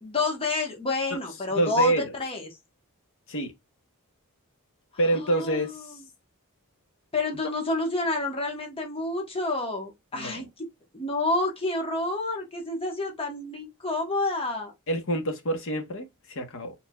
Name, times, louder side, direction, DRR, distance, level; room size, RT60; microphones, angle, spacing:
voice 1, 0.0-2.5 5.1-6.0 7.1-10.7 10.9-14.7, left 2 dB, 25° left, 1.3 m, -29 dB
voice 2, 1.5-2.0 3.3-3.5 5.0-5.8 10.1-10.4 14.9-16.7, right 1 dB, 65° left, 1.2 m, -27 dB
4.5 x 3.8 x 2.3 m
head